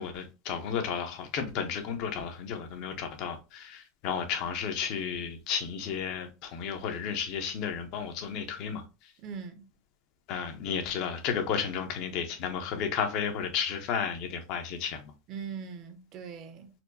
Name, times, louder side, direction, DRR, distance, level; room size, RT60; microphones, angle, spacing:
voice 1, 0.0-9.1 10.3-15.1, left 7 dB, 60° left, 0.8 m, -33 dB
voice 2, 9.2-9.7 15.3-16.8, right 6 dB, 50° right, 0.7 m, -41 dB
4.3 x 2.2 x 2.6 m
supercardioid pair, 120°, 0 cm